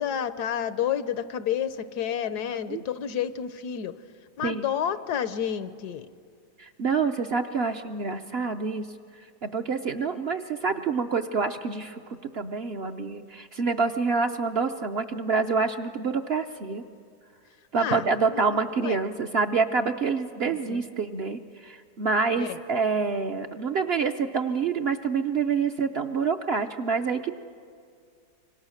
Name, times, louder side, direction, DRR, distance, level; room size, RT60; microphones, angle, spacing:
voice 1, 0.0-3.9 4.4-6.1 17.8-18.4 18.8-19.0 20.7-20.8 22.4-22.6, left 9 dB, 80° left, 13 dB, 1.4 m, -30 dB
voice 2, 6.6-8.9 9.4-12.0 12.3-16.8 17.7-27.3, right 5 dB, 55° right, 6 dB, 0.8 m, -27 dB
26.0 x 25.0 x 6.5 m, 2.2 s
omnidirectional pair, 1.7 m